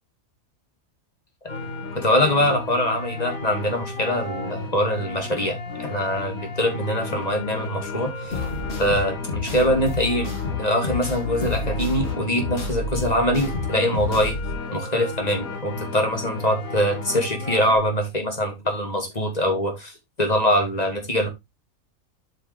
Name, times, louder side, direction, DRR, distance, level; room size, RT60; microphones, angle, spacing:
sound 1, 1.5-17.8, left 3 dB, 70° left, 2.9 m, -33 dB
voice 1, 1.9-5.6 5.9-8.4 8.8-14.3 14.7-19.9 20.2-21.3, equal, 25° left, 3 dB, 2.4 m, -23 dB
sound 2, 8.3-14.5, left 4 dB, 50° left, 2.3 m, -30 dB
8.3 x 5.4 x 3.5 m, 0.20 s
omnidirectional pair, 1.5 m